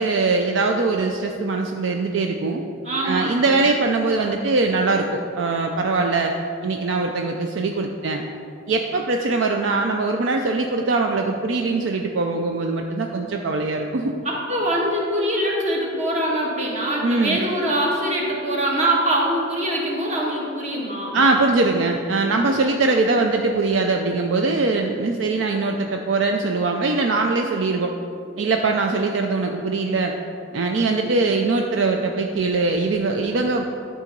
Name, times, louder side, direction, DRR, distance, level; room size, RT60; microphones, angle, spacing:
voice 1, 0.0-2.6 3.0-6.3 6.6-8.2 8.7-14.1 17.0-17.4 21.1-27.9 28.4-30.1 30.5-33.7, right 3 dB, 65° right, 3 dB, 0.4 m, -22 dB
voice 2, 2.8-3.5 14.2-21.2, right 1 dB, 35° right, -3 dB, 1.4 m, -23 dB
11.0 x 3.8 x 5.2 m, 2.7 s
head